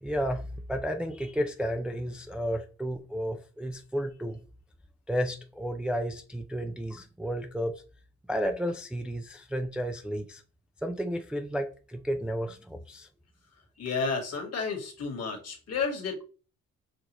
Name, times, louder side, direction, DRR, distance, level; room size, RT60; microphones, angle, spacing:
voice 1, 0.0-4.4 5.1-7.8 8.3-10.4 10.8-13.1, equal, 5° right, 0.4 m, -32 dB
voice 2, 13.8-16.2, left 5 dB, 50° left, 1.6 m, -31 dB
6.6 x 2.5 x 2.9 m
cardioid pair, 95°, 32 cm